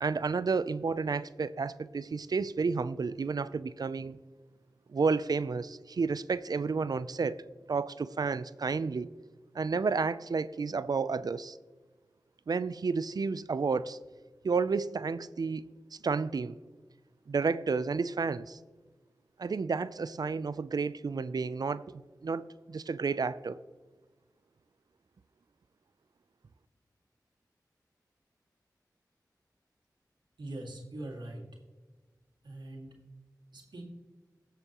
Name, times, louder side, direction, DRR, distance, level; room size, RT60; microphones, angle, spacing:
voice 1, 0.0-4.2 4.9-7.4 7.7-9.1 9.5-11.6 12.5-14.0 14.4-15.7 16.0-16.6 17.3-18.6 19.4-23.6, right 4 dB, 65° right, 0.4 m, -31 dB
voice 2, 30.4-31.4 32.4-32.9 33.5-33.8, right 1 dB, 85° right, 2.0 m, -42 dB
18.0 x 7.0 x 3.0 m
cardioid pair, 40°, 7 cm